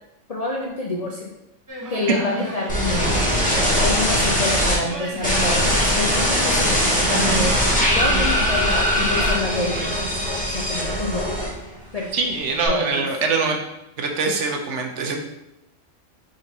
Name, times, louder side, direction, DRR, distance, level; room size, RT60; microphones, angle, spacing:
voice 1, 0.3-1.3 1.9-3.2 3.7-7.5 7.9-9.9 10.5-11.3 11.9-12.1 12.7-13.0, left 3 dB, 55° left, -2 dB, 0.4 m, -27 dB
sound 1, 1.7-10.0, right 1 dB, 25° right, 0.4 m, -34 dB
sound 2, 2.7-4.7 5.2-11.8 12.1-12.7, equal, 5° left, 0.9 m, -21 dB
voice 2, 12.1-13.6 14.0-15.2, right 4 dB, 70° right, 3 dB, 0.9 m, -23 dB
3.7 x 2.7 x 4.6 m, 0.88 s
omnidirectional pair, 1.3 m